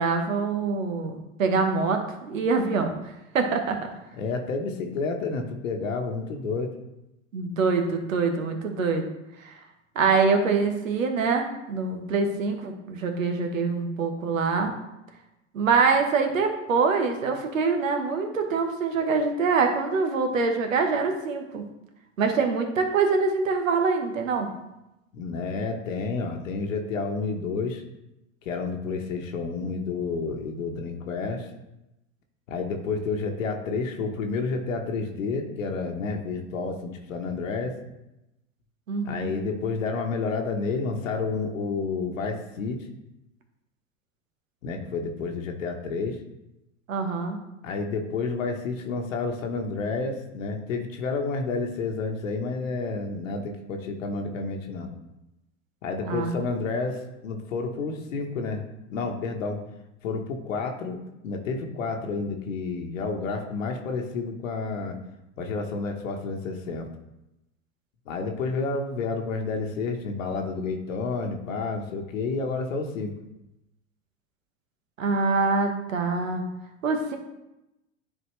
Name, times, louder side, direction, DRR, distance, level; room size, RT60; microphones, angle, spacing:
voice 1, 0.0-2.9 3.3-3.9 7.3-9.0 9.4-9.5 9.9-14.7 15.5-21.6 22.2-24.5 38.9-39.3 46.9-47.4 56.0-56.3 75.0-76.4 76.8-77.2, right 4 dB, 85° right, 5 dB, 1.2 m, -24 dB
voice 2, 4.2-6.7 25.1-27.8 28.4-31.5 32.5-37.8 39.0-42.8 44.6-46.2 47.6-54.9 55.8-58.6 58.9-59.6 60.0-65.0 65.4-66.9 68.1-73.1, left 4 dB, 80° left, 3 dB, 1.1 m, -30 dB
10.0 x 4.3 x 3.2 m, 0.91 s
hypercardioid pair, 85°, 39 cm